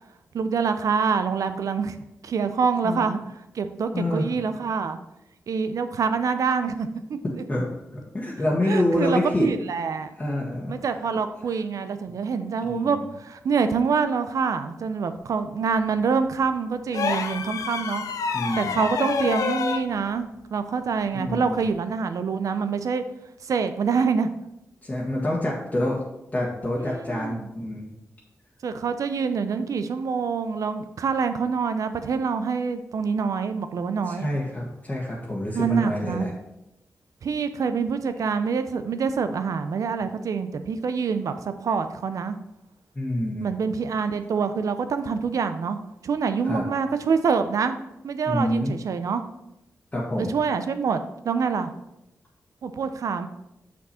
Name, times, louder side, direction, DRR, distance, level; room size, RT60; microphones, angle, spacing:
voice 1, 0.3-2.0 2.2-3.2 3.5-5.0 5.5-7.4 8.6-10.1 10.7-18.0 18.6-23.0 23.4-24.3 26.8-27.5 28.6-34.3 35.5-36.3 37.2-42.4 43.4-45.8 46.0-47.8 48.0-49.2 50.2-51.7 52.6-53.2, right 5 dB, 75° right, 10 dB, 0.6 m, -26 dB
voice 2, 3.9-4.3 7.5-9.5 10.2-10.8 12.7-12.9 18.3-18.8 21.1-21.6 24.8-26.0 26.3-27.9 34.0-36.3 42.9-43.5 46.4-46.6 48.3-48.7 49.9-50.4, left 1 dB, 25° left, -4 dB, 1.5 m, -27 dB
sound 1, 16.9-19.9 21.5-21.7, left 5 dB, 90° left, 0.6 m, -28 dB
6.1 x 6.0 x 4.3 m, 0.89 s
cardioid pair, 75°, 6 cm